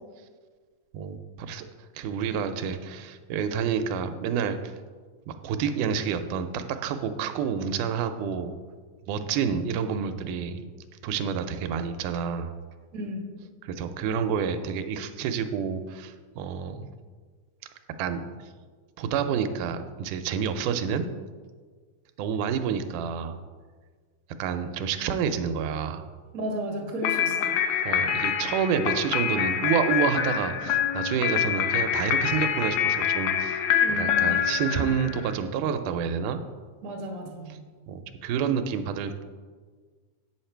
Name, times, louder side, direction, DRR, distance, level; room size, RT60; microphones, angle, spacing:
voice 1, 0.9-1.7 2.0-4.6 5.3-8.6 9.1-10.7 11.0-12.5 13.6-16.9 18.0-18.3 19.0-21.1 22.2-23.4 24.4-26.0 27.9-36.4 37.9-39.2, right 7 dB, 90° right, 9 dB, 2.1 m, -29 dB
voice 2, 12.9-13.3 26.3-27.6 33.8-34.4 36.8-37.6, equal, 40° right, 0 dB, 1.4 m, -34 dB
sound 1, 27.0-35.3, left 8 dB, 80° left, 2.0 m, -26 dB
8.6 x 6.5 x 4.4 m, 1.5 s
omnidirectional pair, 3.5 m